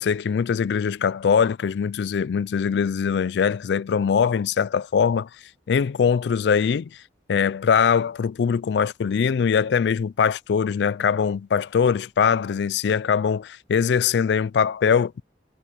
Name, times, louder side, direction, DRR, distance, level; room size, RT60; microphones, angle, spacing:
voice 1, 0.0-5.3 5.7-6.9 7.3-15.2, left 6 dB, 65° left, 0.3 m, -22 dB
head